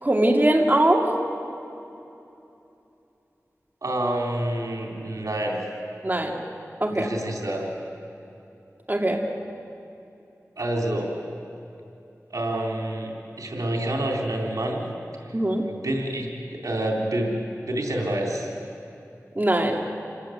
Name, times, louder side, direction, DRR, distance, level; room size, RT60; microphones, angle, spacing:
voice 1, 0.0-1.1 6.0-6.4 6.8-7.1 8.9-9.2 15.3-15.6 19.4-19.8, right 1 dB, 30° right, 0 dB, 2.5 m, -21 dB
voice 2, 3.8-5.6 6.9-7.7 10.6-11.1 12.3-14.9 15.6-17.4 17.7-18.6, right 1 dB, 85° right, 0 dB, 3.6 m, -28 dB
28.0 x 18.0 x 7.9 m, 2.8 s
wide cardioid pair, 45°, 6 cm